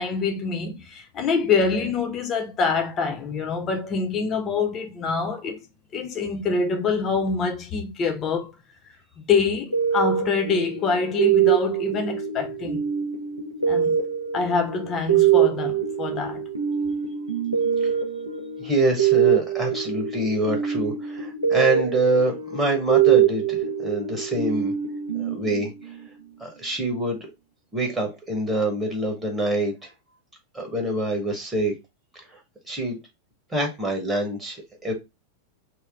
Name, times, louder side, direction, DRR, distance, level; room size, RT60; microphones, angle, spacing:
voice 1, 0.0-5.6 5.9-8.5 9.2-12.8 13.7-14.0 14.3-16.4, left 4 dB, 30° left, 0.8 m, -25 dB
sound 1, 9.7-26.1, right 9 dB, 85° right, 0.8 m, -24 dB
voice 2, 18.6-24.7 25.1-25.9 26.4-27.3 27.7-29.9 30.5-31.7 32.1-32.4 32.7-33.0 33.5-34.9, right 1 dB, 10° right, 1.4 m, -25 dB
3.1 x 2.9 x 3.7 m
figure-of-eight pair, 90°, 0 cm